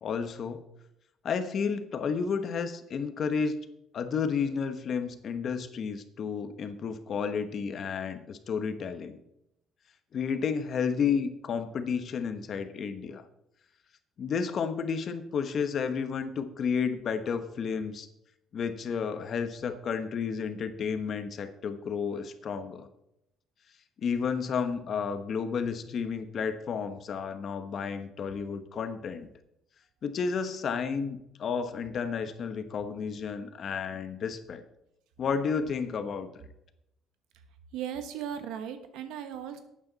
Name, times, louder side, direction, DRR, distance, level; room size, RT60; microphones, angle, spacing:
voice 1, 0.0-0.6 1.2-3.6 3.9-9.2 10.1-13.2 14.2-18.1 18.5-22.9 24.0-29.3 30.0-34.6 35.2-36.3, left 6 dB, 50° left, 10 dB, 1.1 m, -31 dB
voice 2, 37.7-39.6, right 9 dB, 90° right, 9 dB, 1.3 m, -37 dB
12.0 x 8.8 x 4.1 m, 0.82 s
cardioid pair, 115°, 0 cm